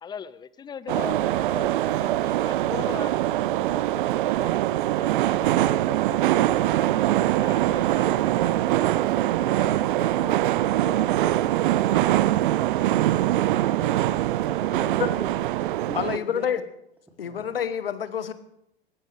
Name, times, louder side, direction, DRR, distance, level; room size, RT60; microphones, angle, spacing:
voice 1, 0.0-3.4 3.7-8.5 9.4-12.4, left 7 dB, 15° left, 17 dB, 0.5 m, -41 dB
sound 1, 0.9-16.2, right 14 dB, 60° right, 0.6 m, -23 dB
voice 2, 13.7-15.3 15.7-16.5 17.2-17.4, right 1 dB, 5° right, -2 dB, 3.2 m, -41 dB
voice 3, 15.9-16.6 17.2-18.3, left 8 dB, 80° left, 12 dB, 1.2 m, -27 dB
21.5 x 15.5 x 3.5 m, 0.80 s
figure-of-eight pair, 95°, 29 cm